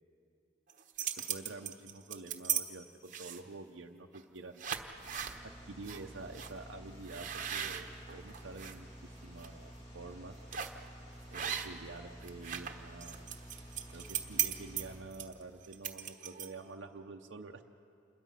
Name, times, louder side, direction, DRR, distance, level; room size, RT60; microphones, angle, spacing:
sound 1, 0.7-2.6 3.1-3.5 4.1-4.3 4.6-5.4 5.8-6.0 6.3-6.5 7.1-8.7 9.2-9.5 10.5-10.8 11.3-11.9 12.2-16.7, right 9 dB, 45° right, 1.2 m, -37 dB
voice 1, 1.3-4.6 5.7-10.3 11.3-13.2 13.9-17.6, right 3 dB, 70° right, 2 dB, 0.8 m, -48 dB
sound 2, 5.0-15.0, equal, 25° left, 3.8 m, -51 dB
27.5 x 21.5 x 5.7 m, 2.6 s
head